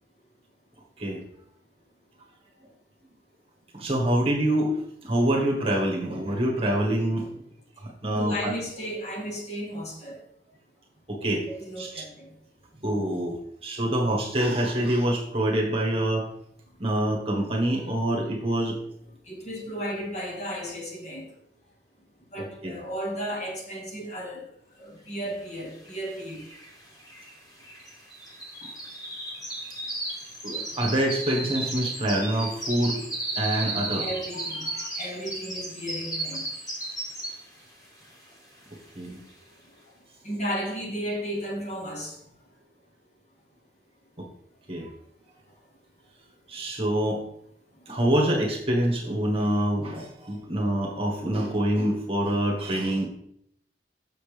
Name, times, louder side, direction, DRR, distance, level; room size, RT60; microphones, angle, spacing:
voice 1, 3.7-4.8 5.0-7.3 7.8-8.5 11.1-11.5 11.8-11.9 12.8-16.3 16.8-18.7 22.4-22.7 30.4-33.0 33.3-34.0 34.6-34.9 39.0-39.2 44.2-44.3 44.7-44.9 46.5-47.2 47.9-53.1, right 1 dB, 35° right, -1 dB, 1.5 m, -26 dB
voice 2, 8.1-10.2 11.5-12.3 19.3-21.3 22.3-24.5 24.8-26.4 34.0-34.7 35.0-36.4 40.2-42.2, equal, 40° left, -1 dB, 1.7 m, -34 dB
sound 1, 25.9-26.0 26.2-37.6 38.0-38.3 38.8-38.9, right 2 dB, 20° left, 1.6 m, -34 dB
6.9 x 6.8 x 3.4 m, 0.71 s
head